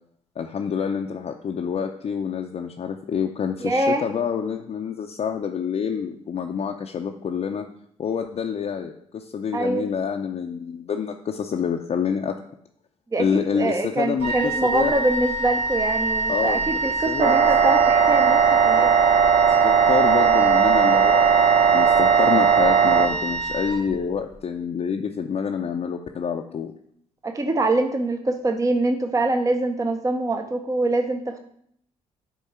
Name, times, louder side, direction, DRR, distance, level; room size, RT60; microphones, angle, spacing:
voice 1, 0.4-7.7 8.0-12.4 13.2-14.9 16.3-17.4 19.6-26.7, left 7 dB, 50° left, 2 dB, 0.5 m, -27 dB
voice 2, 3.6-4.1 9.5-9.9 13.1-13.3 13.5-18.9 27.2-31.4, right 2 dB, 25° right, 6 dB, 0.6 m, -24 dB
Wind instrument woodwind instrument, 14.2-24.3, right 3 dB, 80° right, 2.0 m, -27 dB
sound 1, 17.2-23.1, right 7 dB, 60° right, 0.7 m, -17 dB
8.2 x 3.1 x 4.3 m, 0.68 s
supercardioid pair, 55°, 14 cm